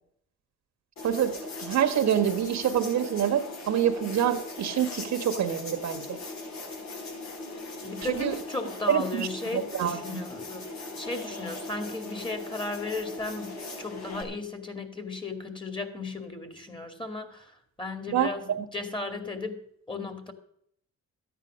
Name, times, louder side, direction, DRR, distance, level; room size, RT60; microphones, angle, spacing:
sound 1, 1.0-14.2, left 2 dB, 65° left, 4.0 m, -39 dB
voice 1, 1.0-6.2 8.1-8.3 8.9-9.3 9.5-10.2 18.1-18.6, right 9 dB, 65° right, 6 dB, 1.6 m, -26 dB
voice 2, 7.8-20.3, left 3 dB, 15° left, 7 dB, 2.4 m, -36 dB
13.5 x 9.3 x 6.4 m, 0.68 s
cardioid pair, 90°, 30 cm